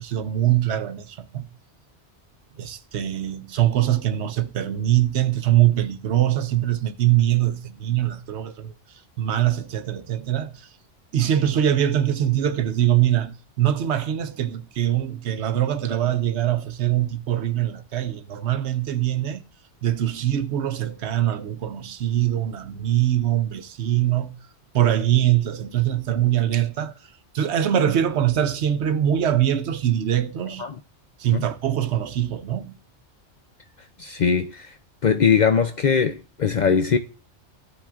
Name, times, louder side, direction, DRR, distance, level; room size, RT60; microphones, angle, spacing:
voice 1, 0.0-1.5 2.6-8.7 9.2-10.7 11.1-19.4 19.8-24.3 24.7-26.9 27.3-30.7 31.2-32.8, right 11 dB, 70° right, 1.0 m, -23 dB
voice 2, 34.0-34.8 35.0-37.0, left 6 dB, 55° left, 0.5 m, -21 dB
15.0 x 5.9 x 2.4 m
omnidirectional pair, 1.2 m